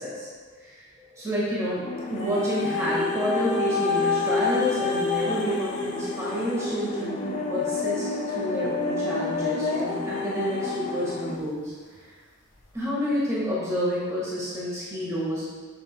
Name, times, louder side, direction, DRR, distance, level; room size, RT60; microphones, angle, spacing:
voice 1, 0.0-1.8 2.1-11.7 12.7-15.4, equal, 15° right, -8 dB, 1.5 m, -29 dB
sound 1, 1.8-11.4, left 2 dB, 30° left, 0.4 m, -36 dB
sound 2, 2.2-11.3 12.0-12.1, left 4 dB, 60° left, 1.3 m, -28 dB
7.8 x 7.0 x 2.2 m, 1.4 s
head